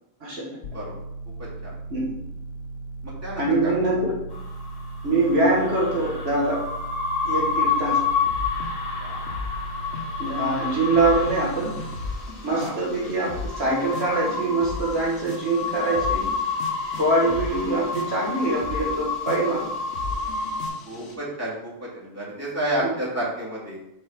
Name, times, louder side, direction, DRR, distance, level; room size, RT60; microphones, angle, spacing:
sound 1, 0.6-12.1, right 3 dB, 55° left, 0.6 m, -37 dB
voice 1, 1.3-1.7 3.0-4.0 7.9-8.0 9.0-9.2 12.5-12.8 20.8-23.8, right 1 dB, 15° right, -7 dB, 2.6 m, -31 dB
voice 2, 3.4-4.1 5.0-6.6 7.2-8.0 10.2-11.7 12.4-16.3 17.0-19.7 22.8-22.9, right 2 dB, 75° right, -4 dB, 1.9 m, -23 dB
sound 2, 4.3-20.7, left 5 dB, 35° left, 1.4 m, -29 dB
sound 3, 7.3-9.0 9.3-21.2, left 3 dB, 80° left, 1.2 m, -38 dB
5.0 x 4.3 x 5.7 m, 0.84 s
omnidirectional pair, 1.1 m